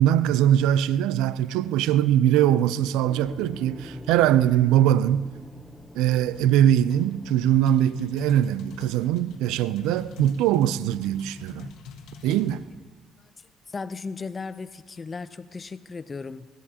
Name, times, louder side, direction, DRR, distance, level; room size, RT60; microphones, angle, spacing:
voice 1, 0.0-5.3 5.9-11.7 12.2-12.7, right 11 dB, 75° right, 0.4 m, -22 dB
sound 1, 3.0-9.2, left 1 dB, 5° left, 1.4 m, -45 dB
sound 2, 6.3-12.6, left 6 dB, 70° left, 1.4 m, -45 dB
voice 2, 13.7-16.5, left 4 dB, 35° left, 0.5 m, -36 dB
21.0 x 16.5 x 2.9 m
hypercardioid pair, 55°, 0 cm